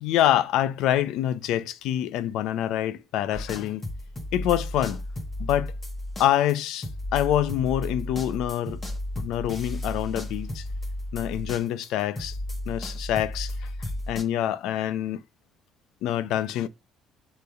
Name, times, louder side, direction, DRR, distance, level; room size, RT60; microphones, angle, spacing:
voice 1, 0.0-3.8 4.3-5.0 5.4-5.7 6.2-8.8 9.2-10.7 11.1-12.4 12.7-15.2 16.0-16.7, left 12 dB, 80° left, 0.5 m, -26 dB
sound 1, 3.3-11.9 12.2-14.2, left 1 dB, 20° left, 1.6 m, -34 dB
6.9 x 3.3 x 5.3 m
cardioid pair, 145°, 0 cm